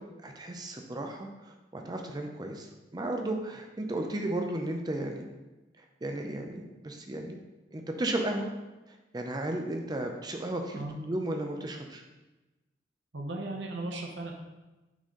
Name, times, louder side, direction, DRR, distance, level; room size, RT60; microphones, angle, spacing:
voice 1, 0.2-5.3 6.0-7.4 7.7-8.5 9.1-12.0, right 1 dB, 20° right, 3 dB, 0.5 m, -34 dB
voice 2, 13.1-14.3, right 2 dB, 70° right, 1 dB, 0.9 m, -36 dB
6.1 x 4.1 x 3.7 m, 1.1 s
head